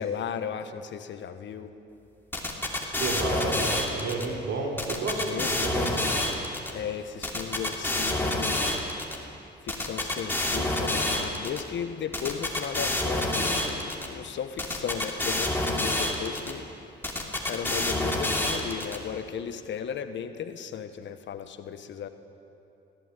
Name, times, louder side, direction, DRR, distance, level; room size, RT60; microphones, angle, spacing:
voice 1, 0.0-1.7 5.2-6.0 6.7-8.8 9.6-16.7 17.5-22.1, left 8 dB, 70° left, 10 dB, 1.3 m, -35 dB
sound 1, 2.3-4.3 4.8-6.7 7.2-9.2 9.7-11.6 12.1-14.1 14.6-16.5 17.0-19.0, left 1 dB, 10° left, 2.9 m, -28 dB
voice 2, 2.8-6.1, right 3 dB, 80° right, -1 dB, 4.1 m, -31 dB
21.0 x 15.0 x 8.3 m, 2.8 s
cardioid pair, 90°, 20 cm